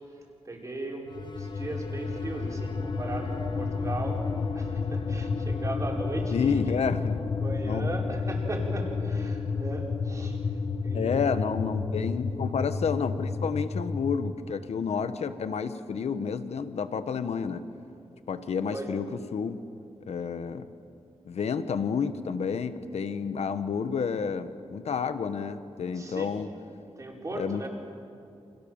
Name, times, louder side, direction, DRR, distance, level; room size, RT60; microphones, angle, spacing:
voice 1, 0.4-4.2 4.5-6.6 7.4-10.4 10.8-11.2 18.7-18.9 25.9-26.3 27.0-27.7, right 2 dB, 30° right, -1 dB, 4.7 m, -37 dB
sound 1, 1.1-14.4, left 4 dB, 45° left, 1.2 m, -31 dB
voice 2, 6.3-7.2 7.6-7.9 10.9-17.6 18.3-19.6 20.1-20.7 21.2-26.5 27.3-27.7, left 6 dB, 85° left, 11 dB, 1.3 m, -30 dB
29.5 x 27.0 x 7.3 m, 2.6 s
wide cardioid pair, 165°, 11 cm